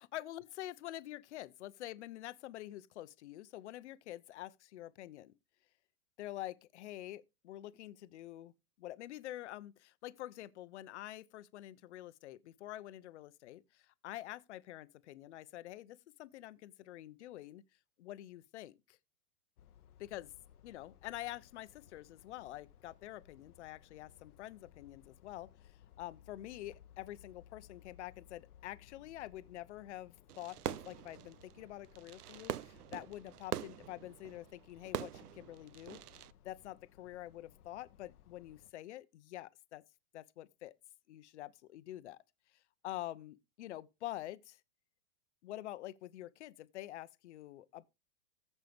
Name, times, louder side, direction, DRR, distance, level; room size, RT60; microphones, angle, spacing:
voice 1, 0.1-5.3 6.2-8.5 8.8-17.6 18.0-19.0 20.0-20.3 20.6-25.5 26.0-36.0 36.4-39.8 40.1-40.7 41.1-42.2 42.8-44.6 45.4-47.9, left 14 dB, 50° left, 0.8 m, -47 dB
sound 1, 19.6-38.7, left 10 dB, 85° left, 0.9 m, -62 dB
Fireworks, 30.3-36.3, right 12 dB, 85° right, 0.7 m, -44 dB
14.0 x 5.5 x 3.5 m
hypercardioid pair, 160°, 44 cm